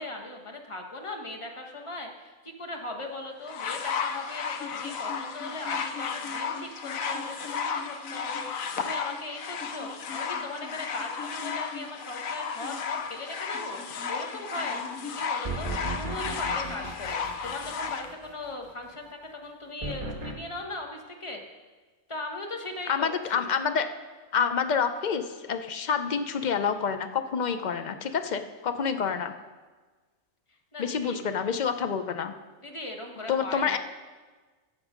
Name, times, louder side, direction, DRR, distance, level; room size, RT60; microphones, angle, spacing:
voice 1, 0.0-21.4 22.1-23.5 30.7-31.2 32.6-33.8, left 2 dB, 25° left, 2 dB, 1.3 m, -39 dB
sound 1, 3.5-18.1 18.9-19.0, left 6 dB, 75° left, 1.2 m, -33 dB
sound 2, 15.4-18.3 19.8-20.3, right 2 dB, 25° right, 1.3 m, -35 dB
voice 2, 22.9-23.9 24.3-29.3 30.8-32.3 33.3-33.8, left 6 dB, 45° left, 9 dB, 0.6 m, -28 dB
14.0 x 8.2 x 5.1 m, 1.3 s
omnidirectional pair, 1.4 m